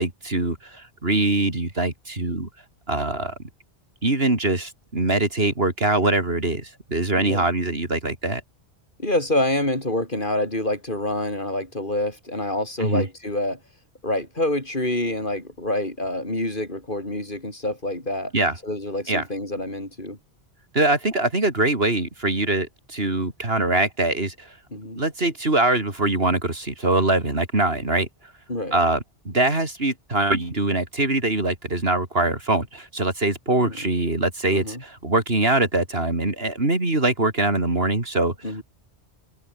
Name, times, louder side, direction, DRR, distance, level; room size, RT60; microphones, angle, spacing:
voice 1, 0.0-2.5 2.9-3.3 4.0-8.4 12.8-13.0 18.3-18.5 19.1-19.2 20.7-24.5 24.9-28.1 28.7-38.3, right 2 dB, 60° right, 4.1 m, -23 dB
voice 2, 7.2-7.5 9.0-13.6 14.0-18.3 18.6-20.2 24.7-25.0 28.5-28.8 33.5-33.8 34.5-34.8 38.4-38.6, left 1 dB, 45° left, 5.6 m, -27 dB
omnidirectional pair, 1.2 m